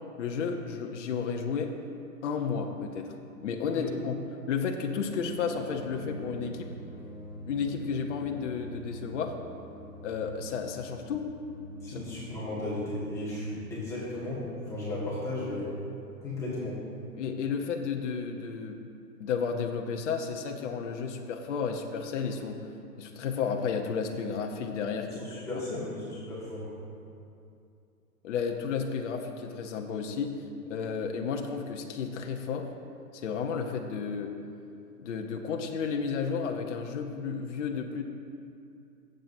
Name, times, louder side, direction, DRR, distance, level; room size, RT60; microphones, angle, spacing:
voice 1, 0.0-1.7 2.2-3.1 3.4-4.1 4.5-6.7 7.5-9.3 10.0-11.3 11.9-12.0 17.1-18.8 19.2-22.6 23.0-25.6 28.2-30.4 30.7-32.7 33.1-34.3 35.0-38.0, left 6 dB, 50° left, 3 dB, 0.9 m, -32 dB
sound 1, 4.9-14.3, right 1 dB, 10° right, 1.9 m, -45 dB
voice 2, 11.8-15.7 16.2-16.8 25.2-26.7, left 1 dB, 5° left, -10 dB, 1.7 m, -35 dB
17.5 x 7.7 x 2.7 m, 2.6 s
hypercardioid pair, 155°, 48 cm